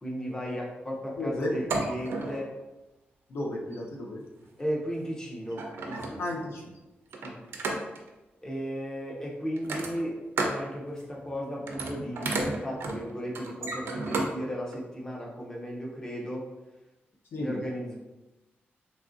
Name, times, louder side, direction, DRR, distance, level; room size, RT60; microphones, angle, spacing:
voice 1, 0.0-2.5 4.6-6.2 7.2-7.4 8.4-16.5 17.4-18.0, equal, 15° left, -3 dB, 0.4 m, -35 dB
voice 2, 1.2-1.6 3.3-4.2 6.2-6.7 17.3-17.6, left 1 dB, 80° left, -1 dB, 0.5 m, -33 dB
sound 1, 1.5-2.5 3.6-3.9 5.0-5.1 5.5-6.4 7.1-8.1 9.6-10.6 11.0-11.3 11.6-14.3 14.7-14.8, right 3 dB, 75° right, 0.4 m, -33 dB
2.9 x 2.4 x 2.5 m, 1.0 s
wide cardioid pair, 165°, 4 cm